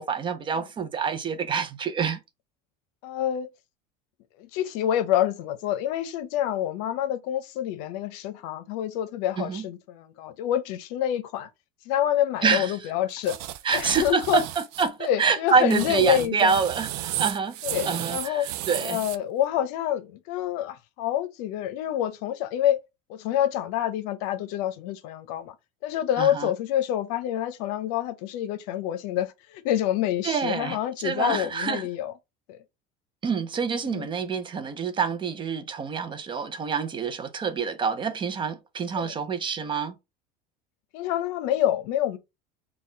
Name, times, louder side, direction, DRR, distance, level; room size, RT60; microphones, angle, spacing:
voice 1, 0.0-2.2 9.4-9.6 12.4-12.8 13.6-17.6 17.9-19.0 26.2-26.5 30.2-30.8 31.0-31.9 33.2-40.0, right 5 dB, 25° right, 0.6 m, -26 dB
voice 2, 3.0-3.5 4.4-11.5 11.8-13.4 13.7-14.4 15.0-16.6 17.6-18.5 18.8-22.8 23.1-25.5 25.8-32.1 32.5-32.6 33.9-34.1 38.9-39.1 40.9-42.2, left 11 dB, 75° left, 0.7 m, -27 dB
sound 1, 13.2-14.9 15.5-19.2, right 14 dB, 85° right, 0.5 m, -33 dB
4.2 x 2.3 x 3.8 m
cardioid pair, 135°, 20 cm